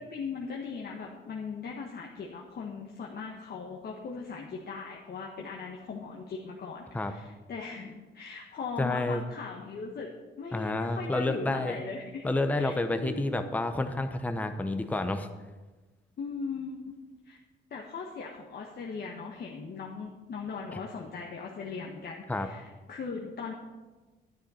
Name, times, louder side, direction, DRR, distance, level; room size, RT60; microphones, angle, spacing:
voice 1, 0.0-10.1 10.4-12.3 12.5-13.3 16.2-16.9 17.2-17.4 17.7-23.5, left 5 dB, 55° left, -1 dB, 1.2 m, -39 dB
voice 2, 8.8-9.2 10.5-11.7 12.2-15.3 22.3-22.5, left 2 dB, 5° left, 7 dB, 0.7 m, -29 dB
10.5 x 9.2 x 4.3 m, 1.3 s
cardioid pair, 90°, 20 cm